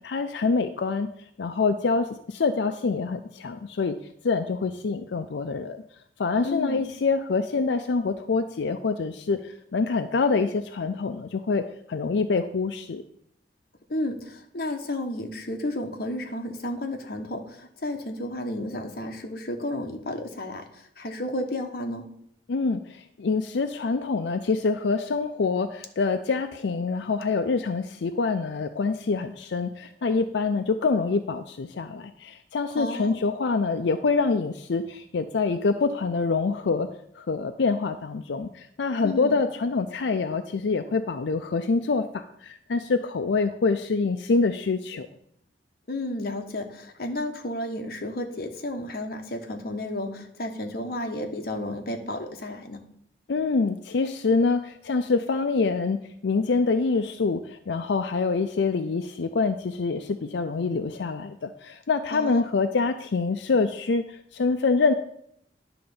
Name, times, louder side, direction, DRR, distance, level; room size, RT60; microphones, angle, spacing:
voice 1, 0.0-1.1 1.4-3.9 4.2-5.8 6.2-9.4 9.7-11.6 11.9-13.0 22.5-36.9 37.2-45.1 53.3-64.0 64.3-64.9, left 4 dB, 90° left, 7 dB, 0.5 m, -25 dB
voice 2, 6.4-6.8 13.9-20.6 21.0-22.0 32.7-33.2 39.0-39.3 45.9-52.8 62.1-62.5, left 1 dB, 55° left, 4 dB, 1.1 m, -32 dB
10.5 x 3.8 x 7.0 m, 0.71 s
head